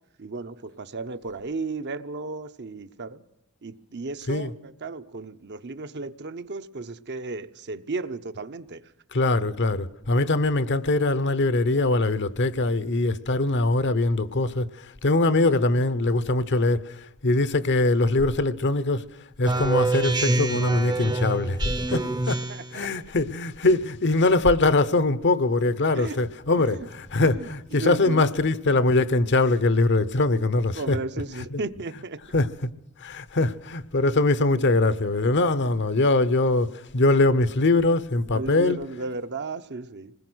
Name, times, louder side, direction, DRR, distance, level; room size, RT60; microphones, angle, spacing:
voice 1, 0.2-3.2 3.6-8.8 22.5-22.9 25.9-26.2 26.6-26.9 27.2-28.3 30.7-32.2 38.3-40.1, right 3 dB, 50° right, 0.9 m, -34 dB
voice 2, 9.1-19.1 19.4-21.6 21.9-22.4 22.7-31.0 31.5-31.6 32.3-32.7 33.0-38.8, left 2 dB, 55° left, 0.9 m, -22 dB
Speech synthesizer, 19.4-22.8, right 2 dB, 20° right, 0.7 m, -26 dB
26.5 x 20.5 x 6.3 m
head